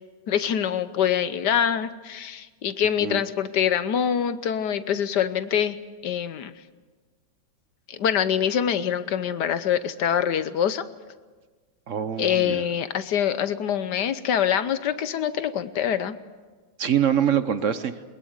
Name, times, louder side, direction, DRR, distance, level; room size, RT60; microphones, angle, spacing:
voice 1, 0.3-5.8 6.0-6.5 7.9-10.8 12.2-16.1, left 9 dB, 65° left, 13 dB, 1.4 m, -25 dB
voice 2, 11.9-12.6 16.8-17.9, right 9 dB, 50° right, 11 dB, 1.0 m, -24 dB
21.0 x 20.5 x 8.0 m, 1.4 s
omnidirectional pair, 2.2 m